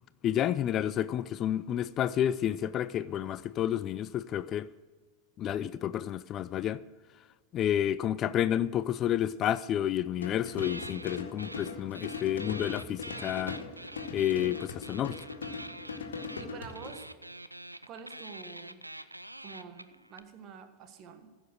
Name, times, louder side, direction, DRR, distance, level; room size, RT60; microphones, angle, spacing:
voice 1, 0.2-4.7 5.4-6.8 7.5-13.6 14.1-15.2, left 11 dB, 30° left, 0.3 m, -30 dB
sound 1, 10.2-16.9, left 4 dB, 65° left, 1.9 m, -40 dB
sound 2, 10.6-11.7 11.9-20.2, right 1 dB, 85° right, 0.4 m, -45 dB
voice 2, 16.4-17.1 17.9-18.8 19.4-21.3, right 6 dB, 35° right, 1.5 m, -47 dB
15.5 x 7.2 x 6.3 m
figure-of-eight pair, 90°, 0 cm